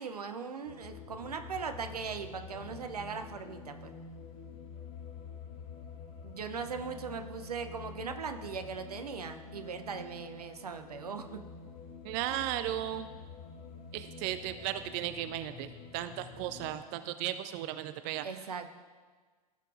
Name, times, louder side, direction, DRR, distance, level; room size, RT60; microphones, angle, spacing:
voice 1, 0.0-3.9 6.2-11.4 18.2-18.7, right 5 dB, 75° right, 8 dB, 0.7 m, -39 dB
sound 1, 0.7-16.8, left 5 dB, 40° left, 1.0 m, -48 dB
voice 2, 12.1-13.1 13.9-15.7 15.9-18.3, right 13 dB, 35° right, 11 dB, 0.4 m, -35 dB
16.5 x 6.6 x 2.5 m, 1.5 s
figure-of-eight pair, 95°, 20 cm